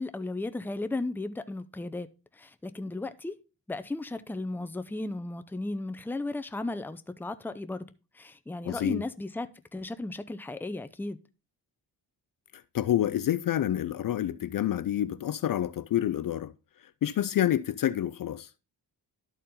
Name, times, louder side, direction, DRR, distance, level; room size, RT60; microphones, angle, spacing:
voice 1, 0.0-2.1 2.3-3.3 3.7-7.9 8.1-11.2, left 2 dB, 5° left, 0.5 m, -35 dB
voice 2, 8.6-9.0 12.7-16.5 17.0-18.5, left 11 dB, 50° left, 0.5 m, -28 dB
12.0 x 4.2 x 3.7 m
cardioid pair, 70°, 42 cm